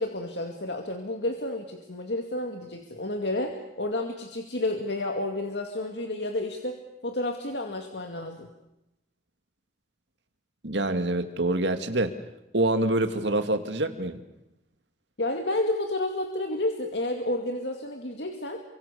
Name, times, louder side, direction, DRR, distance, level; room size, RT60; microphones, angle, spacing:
voice 1, 0.0-8.5 15.2-18.6, left 1 dB, 75° left, 4 dB, 2.3 m, -31 dB
voice 2, 10.6-12.2 12.5-14.2, right 2 dB, 85° right, 8 dB, 2.4 m, -26 dB
29.0 x 24.5 x 7.1 m, 0.90 s
head